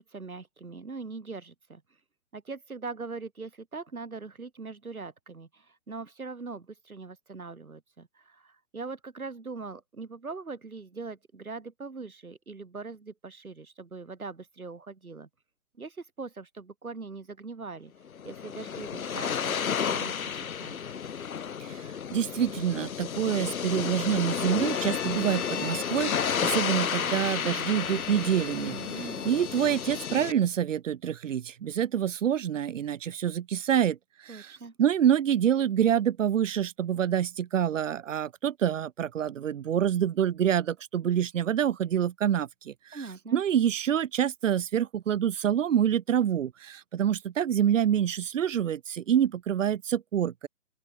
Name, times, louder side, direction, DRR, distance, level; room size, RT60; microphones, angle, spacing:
voice 1, 0.0-1.8 2.3-15.3 15.8-17.9 18.2-20.8 28.7-29.3 34.3-34.7 42.9-43.4, right 4 dB, 90° right, 2.0 m, -41 dB
sound 1, 18.1-30.3, left 7 dB, 75° left, 0.9 m, -32 dB
voice 2, 22.1-28.8 29.2-34.0 34.2-34.5 34.8-42.7 43.3-50.5, right 9 dB, 65° right, 0.7 m, -26 dB
Bowed string instrument, 24.2-30.3, left 8 dB, 55° left, 3.4 m, -42 dB
open air
figure-of-eight pair, 135°, 42 cm